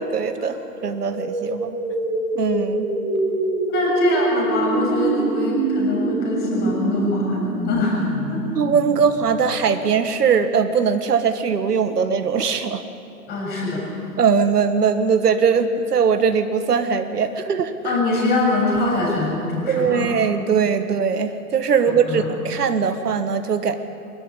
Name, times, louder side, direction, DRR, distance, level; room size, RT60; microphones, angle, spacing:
voice 1, 0.1-0.6 0.8-1.8 2.3-2.9 8.5-12.8 14.2-18.0 19.7-23.8, right 6 dB, 75° right, 8 dB, 1.6 m, -20 dB
sound 1, 0.7-9.7, right 2 dB, 15° right, 2.5 m, -25 dB
voice 2, 3.7-8.4 13.3-14.0 17.8-20.1 22.0-22.3, left 2 dB, 20° left, -2 dB, 6.7 m, -23 dB
24.5 x 13.5 x 9.9 m, 2.7 s
hypercardioid pair, 150°, 47 cm